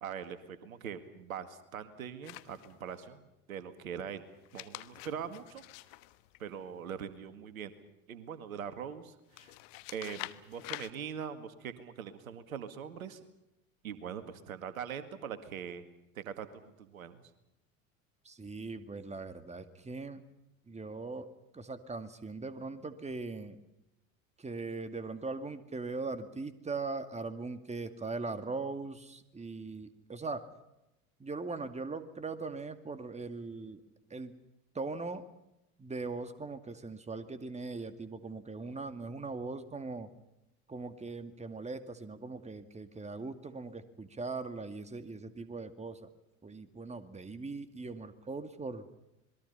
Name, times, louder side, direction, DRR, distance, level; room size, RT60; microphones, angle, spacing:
voice 1, 0.0-4.2 4.5-5.6 6.4-7.7 8.1-9.6 9.9-13.2 13.8-15.8 16.1-17.2, right 7 dB, 85° right, 11 dB, 2.0 m, -42 dB
sound 1, 2.2-3.0 4.3-6.9 9.3-10.9, left 21 dB, 60° left, 1.3 m, -47 dB
voice 2, 18.2-20.2 20.7-21.3 21.5-23.6 24.4-30.5 31.2-33.8 34.1-34.3 34.7-35.2 35.8-40.1 40.7-46.1 46.4-48.9, right 3 dB, 15° right, 10 dB, 2.3 m, -40 dB
28.0 x 21.5 x 5.6 m, 0.90 s
hypercardioid pair, 80°, 41 cm